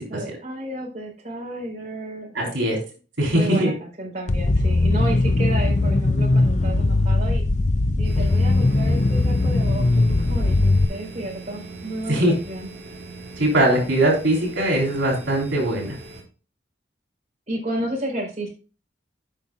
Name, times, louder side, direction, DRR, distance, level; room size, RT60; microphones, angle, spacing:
voice 1, 0.1-2.6 3.3-7.4 8.0-12.7 17.5-18.5, right 1 dB, 40° right, -2 dB, 4.3 m, -32 dB
voice 2, 2.3-2.8 3.2-3.7 12.1-12.3 13.4-16.0, right 1 dB, 85° right, -1 dB, 3.5 m, -20 dB
sound 1, 4.3-10.8, left 2 dB, 40° left, 0.6 m, -19 dB
sound 2, 8.0-16.2, right 3 dB, 60° right, 3.5 m, -40 dB
16.5 x 5.7 x 2.4 m, 0.35 s
head